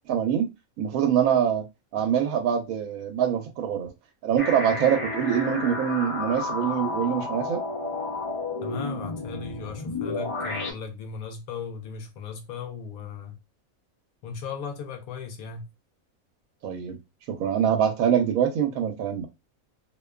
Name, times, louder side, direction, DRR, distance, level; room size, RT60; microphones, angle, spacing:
voice 1, 0.1-0.5 0.8-1.6 1.9-3.9 4.2-7.6 16.6-17.0 17.3-19.3, right 9 dB, 85° right, 1.0 m, -24 dB
sound 1, 4.4-10.7, left 3 dB, 45° left, 0.4 m, -31 dB
voice 2, 8.6-13.3 14.2-15.7, left 5 dB, 85° left, 1.0 m, -37 dB
2.5 x 2.2 x 2.3 m
omnidirectional pair, 1.4 m